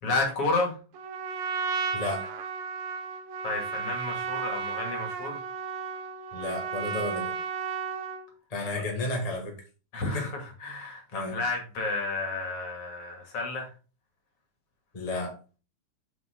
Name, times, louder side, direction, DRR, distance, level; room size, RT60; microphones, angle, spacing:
voice 1, 0.0-0.8 3.4-5.4 9.9-13.7, left 3 dB, 45° left, 2 dB, 3.1 m, -31 dB
Trumpet, 0.9-8.3, right 6 dB, 80° right, 2.7 m, -33 dB
voice 2, 1.9-2.2 6.3-7.3 8.5-9.5 10.1-10.3 11.1-11.4 14.9-15.4, left 2 dB, 20° left, 1 dB, 1.2 m, -32 dB
7.7 x 7.5 x 3.9 m, 0.35 s
omnidirectional pair, 3.9 m